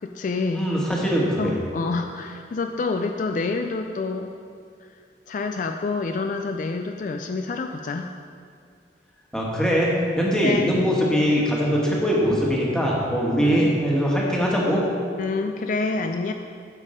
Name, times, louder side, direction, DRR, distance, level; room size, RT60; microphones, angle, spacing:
voice 1, 0.0-0.7 1.4-4.3 4.8-4.9 5.3-8.1 9.6-9.8 10.4-10.7 13.4-13.7 15.2-16.3, left 3 dB, 45° left, 5 dB, 0.3 m, -27 dB
voice 2, 0.5-1.6 9.3-14.8, equal, 5° left, -4 dB, 1.5 m, -22 dB
8.3 x 7.2 x 5.0 m, 2.3 s
head